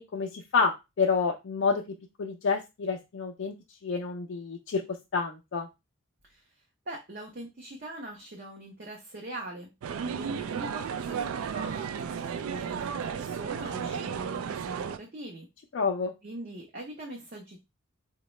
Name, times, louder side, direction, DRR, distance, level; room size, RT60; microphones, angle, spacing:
voice 1, 0.0-1.8 2.2-3.5 3.8-4.8 5.1-5.7 15.7-16.1, left 5 dB, 60° left, 2 dB, 0.4 m, -28 dB
voice 2, 6.2-9.7 10.2-15.5 16.2-17.6, right 1 dB, 45° right, 0 dB, 0.6 m, -42 dB
sound 1, 9.8-15.0, right 7 dB, 90° right, 0.3 m, -33 dB
3.8 x 2.1 x 3.0 m, 0.24 s
head